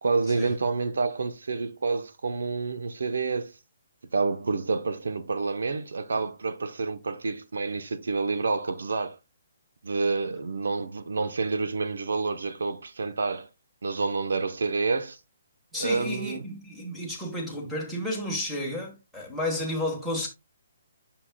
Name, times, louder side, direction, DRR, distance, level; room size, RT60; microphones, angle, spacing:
voice 1, 0.0-3.5 4.1-9.2 9.8-13.5 13.8-15.2 15.8-16.4, right 4 dB, 85° right, 0.9 m, -28 dB
voice 2, 15.7-20.3, left 1 dB, ahead, 1.3 m, -32 dB
8.6 x 5.8 x 2.3 m
hypercardioid pair, 175°, 0 cm